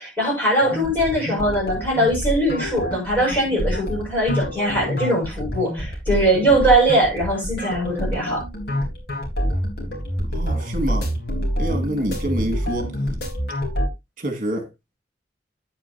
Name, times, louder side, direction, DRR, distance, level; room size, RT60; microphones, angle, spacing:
voice 1, 0.0-8.4, right 1 dB, 10° left, 6.6 m, -21 dB
sound 1, 0.6-13.9, equal, 60° left, 4.3 m, -27 dB
voice 2, 10.3-11.1 11.6-12.9 14.2-14.7, right 1 dB, 45° right, 2.3 m, -26 dB
9.7 x 9.0 x 2.8 m
head